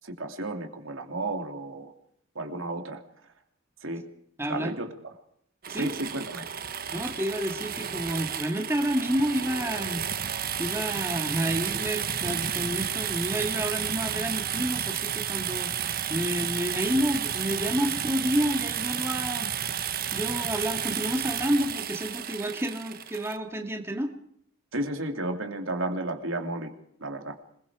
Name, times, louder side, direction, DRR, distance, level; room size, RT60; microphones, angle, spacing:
voice 1, 0.0-1.9 2.3-3.3 3.8-4.0 4.5-4.9 5.7-6.5 24.7-26.7 27.0-27.4, right 2 dB, 75° right, 5 dB, 3.0 m, -33 dB
voice 2, 4.4-4.7 5.7-5.9 6.9-19.5 20.1-24.1, equal, 10° right, 3 dB, 2.3 m, -30 dB
sound 1, 5.6-23.4, right 8 dB, 45° right, 1.2 m, -32 dB
26.5 x 22.0 x 5.0 m, 0.68 s
head